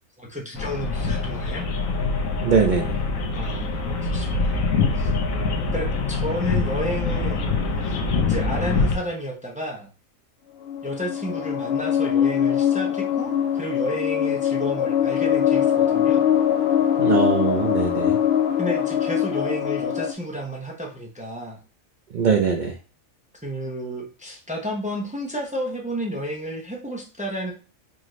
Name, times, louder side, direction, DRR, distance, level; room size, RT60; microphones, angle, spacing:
voice 1, 0.2-1.7 3.4-4.6 5.0-5.1 5.7-7.5 7.8-8.0 8.2-9.9 10.8-16.3 18.6-21.6 23.4-27.5, equal, 10° right, -1 dB, 0.6 m, -31 dB
sound 1, 0.6-9.0, left 4 dB, 85° left, 1.1 m, -24 dB
voice 2, 2.4-3.0 17.0-18.2 22.1-22.7, right 5 dB, 80° right, 3 dB, 0.4 m, -21 dB
sound 2, 10.7-20.1, left 9 dB, 65° left, 0.7 m, -22 dB
4.9 x 2.5 x 3.1 m, 0.36 s
omnidirectional pair, 1.4 m